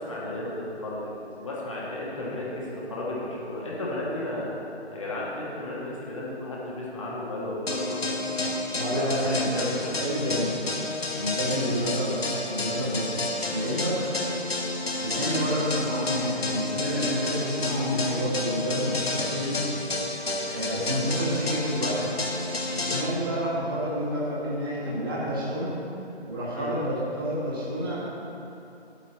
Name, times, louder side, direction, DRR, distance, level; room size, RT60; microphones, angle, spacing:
voice 1, 0.0-4.5 4.9-8.4 9.0-10.2 15.2-15.5 26.5-26.7, left 1 dB, 30° left, -5 dB, 1.3 m, -34 dB
sound 1, 7.7-23.0, left 2 dB, 65° left, 1.1 m, -30 dB
voice 2, 8.7-9.7 10.0-10.6 11.2-12.2 12.5-13.2 13.5-14.0 15.0-19.6 20.5-22.0 22.7-25.7 26.2-28.1, equal, 20° right, -8 dB, 1.4 m, -29 dB
8.3 x 8.3 x 4.2 m, 2.9 s
figure-of-eight pair, 150°, 34 cm